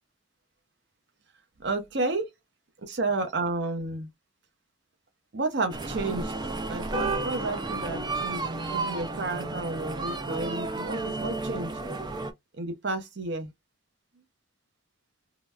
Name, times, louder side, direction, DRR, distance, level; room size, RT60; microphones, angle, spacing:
voice 1, 1.6-2.3 2.8-4.1 5.3-6.3 6.7-11.7 12.6-13.5, right 3 dB, 55° right, 0.7 m, -31 dB
sound 1, 5.7-12.3, right 3 dB, 20° right, 0.3 m, -32 dB
3.8 x 2.1 x 2.2 m
head